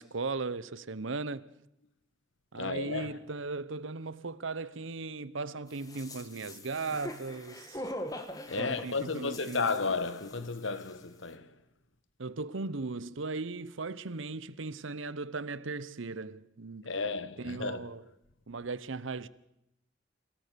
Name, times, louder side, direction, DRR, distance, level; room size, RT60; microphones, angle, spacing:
voice 1, 0.0-1.5 2.5-7.8 8.6-9.7 12.2-17.0 17.4-18.0 18.5-19.3, right 3 dB, 75° right, 0.9 m, -37 dB
voice 2, 2.5-3.2 8.5-11.5 16.8-17.9, left 4 dB, 75° left, 1.5 m, -33 dB
sound 1, 5.7-10.6 10.8-10.9, left 1 dB, 20° left, 1.9 m, -42 dB
28.5 x 18.0 x 6.9 m
head